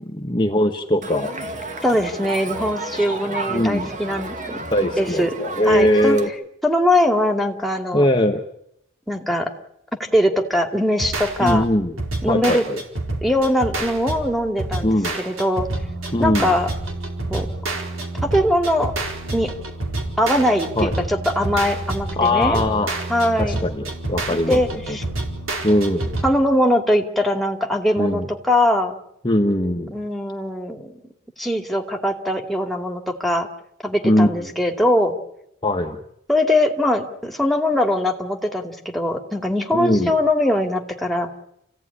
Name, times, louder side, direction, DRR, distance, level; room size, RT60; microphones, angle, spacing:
voice 1, 0.1-1.3 2.9-3.2 3.5-3.9 4.7-6.3 7.9-8.4 11.4-11.9 12.3-12.8 14.8-15.1 16.1-16.5 20.8-20.9 22.2-22.9 23.4-24.6 24.9-25.0 25.6-26.1 28.0-28.3 29.2-29.9 34.0-34.5 35.6-36.0 39.7-40.1, left 1 dB, 20° left, 2 dB, 1.4 m, -20 dB
Crowd, 1.0-6.3, right 3 dB, 35° right, 2.2 m, -32 dB
voice 2, 1.8-4.6 5.0-5.3 5.7-6.2 6.6-8.0 9.1-9.5 10.1-11.6 12.2-12.6 13.2-15.7 16.2-16.7 17.3-17.5 18.2-18.9 19.3-19.5 20.2-22.6 23.1-23.6 24.3-25.0 26.2-29.0 29.9-31.0 31.4-33.5 33.8-35.1 36.3-41.3, left 1 dB, ahead, 2 dB, 2.5 m, -21 dB
sound 1, 11.0-26.3, right 2 dB, 65° right, 4.6 m, -28 dB
29.0 x 16.5 x 9.9 m, 0.79 s
head